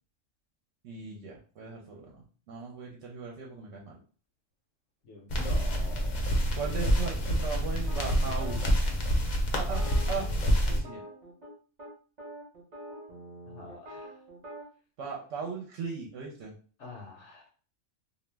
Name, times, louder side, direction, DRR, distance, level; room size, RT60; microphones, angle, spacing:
voice 1, 0.8-4.0 6.6-8.7 9.5-9.8 10.1-10.3 10.6-11.0 15.0-16.5, right 5 dB, 70° right, -1 dB, 0.8 m, -38 dB
voice 2, 5.1-6.3 13.5-14.1 16.8-17.5, left 4 dB, 70° left, 0 dB, 0.9 m, -46 dB
sound 1, 5.3-10.8, equal, 50° left, 0.5 m, -27 dB
sound 2, 7.9-8.6 9.6-11.5 11.8-11.9 12.2-14.7, right 1 dB, 40° right, 0.8 m, -45 dB
2.4 x 2.0 x 3.2 m, 0.41 s
omnidirectional pair, 1.3 m